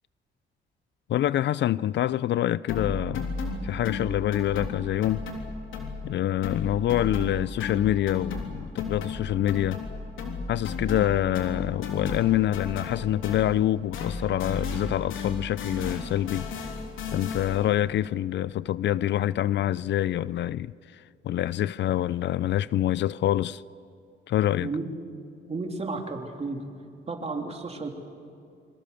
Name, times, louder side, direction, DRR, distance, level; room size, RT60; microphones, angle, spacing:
voice 1, 1.1-3.3 3.6-5.2 6.0-9.8 10.5-16.5 17.1-23.6 24.3-24.7, left 12 dB, 65° left, 0.5 m, -26 dB
sound 1, 2.7-6.2 6.4-13.7 13.9-17.7, left 4 dB, 80° left, 3.4 m, -34 dB
voice 2, 24.6-24.9 25.5-26.6 27.1-27.9, right 3 dB, 30° right, 3.3 m, -32 dB
25.5 x 23.5 x 7.0 m
cardioid pair, 90°, 20 cm